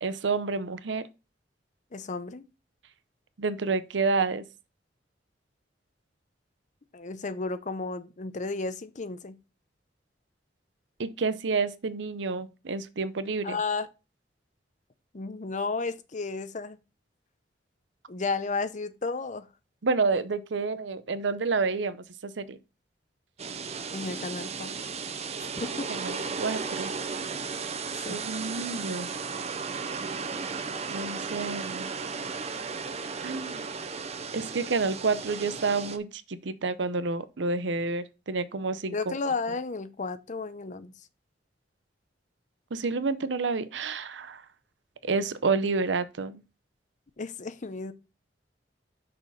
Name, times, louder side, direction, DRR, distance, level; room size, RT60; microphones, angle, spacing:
voice 1, 0.0-1.1 3.4-4.4 11.0-13.6 19.8-22.6 25.9-26.9 28.1-29.1 30.9-31.9 33.2-33.6 34.3-39.0 42.7-44.4 45.0-46.4, right 4 dB, 80° right, 0.7 m, -29 dB
voice 2, 1.9-2.4 6.9-9.4 13.4-13.9 15.1-16.8 18.1-19.5 23.9-24.7 25.4-26.3 28.0-28.2 38.9-40.9 47.2-47.9, left 3 dB, 45° left, 0.7 m, -33 dB
sound 1, 23.4-36.0, right 5 dB, 35° right, 0.7 m, -35 dB
6.4 x 4.7 x 5.6 m
head